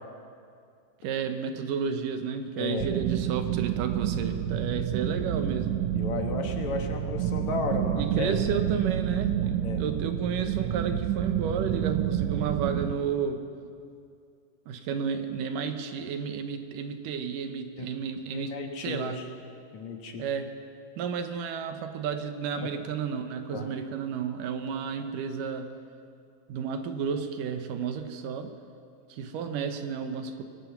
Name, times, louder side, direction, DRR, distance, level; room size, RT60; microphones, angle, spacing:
voice 1, 1.0-5.9 8.0-13.4 14.7-19.2 20.2-20.5 21.0-25.7 26.5-28.5 29.1-30.4, right 6 dB, 90° right, 7 dB, 2.8 m, -32 dB
voice 2, 2.6-2.9 6.0-8.3 9.6-9.8 17.7-17.9 18.3-19.3 19.7-20.2 22.5-22.7 23.5-23.7, left 4 dB, 65° left, 3 dB, 2.7 m, -33 dB
sound 1, 2.8-12.9, right 10 dB, 70° right, 2.0 m, -29 dB
23.0 x 19.0 x 6.0 m, 2.4 s
omnidirectional pair, 3.7 m